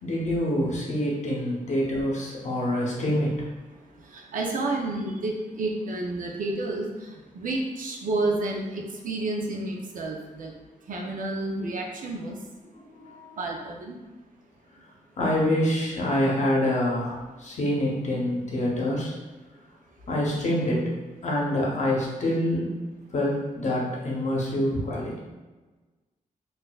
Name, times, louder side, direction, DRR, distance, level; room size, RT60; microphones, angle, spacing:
voice 1, 0.0-3.5 12.7-13.4 15.2-19.2 20.1-20.9 21.2-22.7 23.1-25.2, left 1 dB, 55° left, -3 dB, 0.8 m, -26 dB
voice 2, 4.1-10.5 10.9-12.3 13.4-14.0, right 2 dB, 70° right, 1 dB, 0.5 m, -30 dB
4.1 x 2.5 x 2.3 m, 1.2 s
wide cardioid pair, 180°, 14 cm